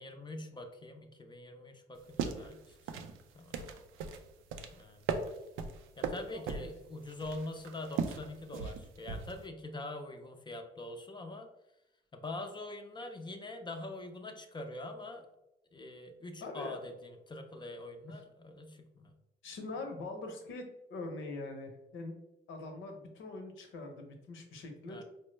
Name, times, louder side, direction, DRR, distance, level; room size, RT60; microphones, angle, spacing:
voice 1, 0.0-3.1 3.3-3.7 4.7-5.1 6.0-11.5 12.1-15.3 15.7-19.1 24.8-25.0, left 2 dB, 25° left, 5 dB, 0.4 m, -44 dB
sound 1, 2.0-9.5, right 5 dB, 85° right, 0.4 m, -39 dB
voice 2, 16.4-16.8 19.4-22.2 22.5-25.0, left 2 dB, 75° left, 4 dB, 0.8 m, -43 dB
4.3 x 2.1 x 3.1 m, 0.91 s
cardioid pair, 90°, 20 cm